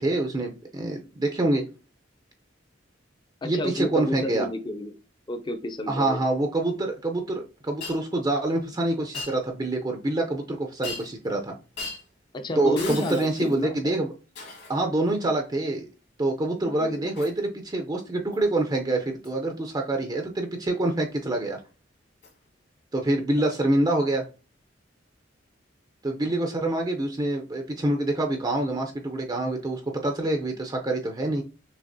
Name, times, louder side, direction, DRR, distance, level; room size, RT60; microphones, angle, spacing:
voice 1, 0.0-1.6 3.4-4.5 5.9-11.6 12.6-14.1 14.7-15.9 16.2-21.6 22.9-24.2 26.0-31.4, right 2 dB, 20° right, 3 dB, 0.5 m, -26 dB
voice 2, 3.4-5.0 5.3-6.2 12.3-13.8 16.6-17.1, left 1 dB, 25° left, 7 dB, 0.5 m, -31 dB
Shatter, 7.8-8.0 9.1-9.4 10.8-11.3 11.8-12.0 12.8-13.6 14.3-14.8 17.2-17.4 18.3-18.5 19.2-19.4 22.2-22.3 23.4-23.5, left 3 dB, 60° left, 1.9 m, -37 dB
6.4 x 2.9 x 2.6 m, 0.32 s
head